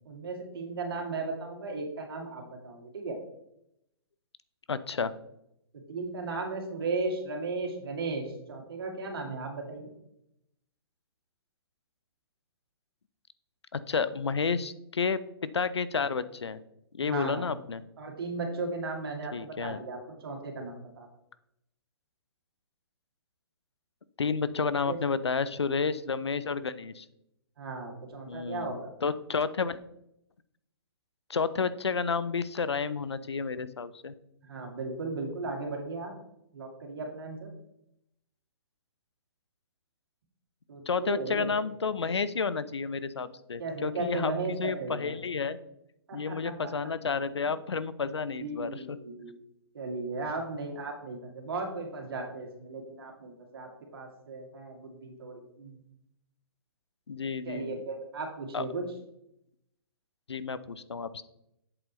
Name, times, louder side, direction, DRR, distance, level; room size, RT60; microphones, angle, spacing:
voice 1, 0.1-3.2 5.7-9.9 17.0-17.5 18.0-21.1 24.6-25.0 25.4-25.5 27.6-28.9 34.4-36.1 36.5-37.5 40.7-41.5 43.6-45.1 46.1-46.9 48.4-49.4 49.7-55.8 57.4-58.8, right 3 dB, 65° right, 1 dB, 2.4 m, -36 dB
voice 2, 4.7-5.1 13.7-16.6 16.9-17.8 19.3-19.8 24.2-27.1 28.3-29.8 31.3-34.1 40.9-45.6 46.1-49.0 57.1-57.8 58.5-58.7 60.3-61.2, left 5 dB, 85° left, 15 dB, 0.6 m, -31 dB
7.9 x 7.6 x 3.1 m, 0.80 s
hypercardioid pair, 130°, 14 cm